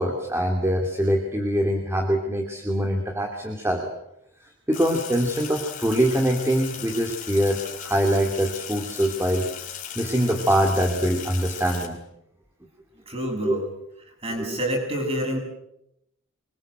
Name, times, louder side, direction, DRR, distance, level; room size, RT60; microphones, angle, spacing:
voice 1, 0.0-3.9 4.7-9.5 10.0-12.0 13.4-13.5, equal, 10° right, 2 dB, 2.6 m, -23 dB
Sink (filling or washing), 4.7-11.9, left 9 dB, 40° left, 4.3 m, -37 dB
voice 2, 13.1-13.7 14.2-15.4, equal, 25° right, 2 dB, 7.5 m, -27 dB
26.0 x 23.0 x 7.9 m, 0.81 s
head